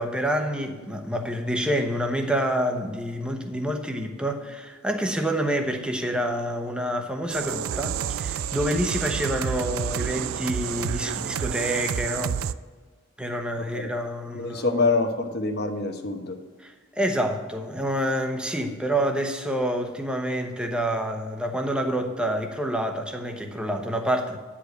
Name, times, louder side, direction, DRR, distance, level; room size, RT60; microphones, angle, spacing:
voice 1, 0.0-12.4 13.2-14.8 16.6-24.4, equal, 5° right, 4 dB, 0.9 m, -27 dB
sound 1, 7.3-12.5, right 8 dB, 85° right, 0.3 m, -29 dB
voice 2, 13.6-13.9 14.3-16.4, left 3 dB, 50° left, 6 dB, 1.0 m, -26 dB
9.9 x 5.0 x 7.9 m, 1.4 s
head